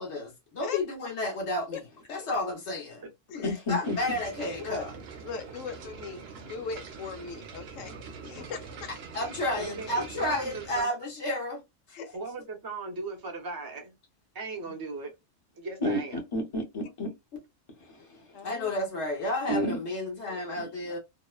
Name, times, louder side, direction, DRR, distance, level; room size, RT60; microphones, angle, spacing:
voice 1, 0.0-1.8 2.1-3.0 3.3-4.9 9.1-11.6 11.9-12.1 18.4-21.0, left 1 dB, 65° left, 1.2 m, -32 dB
voice 2, 3.4-3.9 15.8-16.0 16.3-17.1 17.9-18.4 19.5-19.7 20.6-20.7, left 1 dB, 30° left, 0.8 m, -30 dB
sound 1, 3.8-10.8, right 5 dB, 60° right, 0.8 m, -44 dB
voice 3, 5.2-7.9 8.2-8.9 11.9-12.1 18.3-18.7 20.3-20.4, left 5 dB, 85° left, 1.0 m, -39 dB
voice 4, 9.5-10.9 12.1-13.9 14.3-15.1 15.5-16.2, right 3 dB, 25° right, 0.5 m, -38 dB
2.8 x 2.1 x 2.3 m
omnidirectional pair, 1.3 m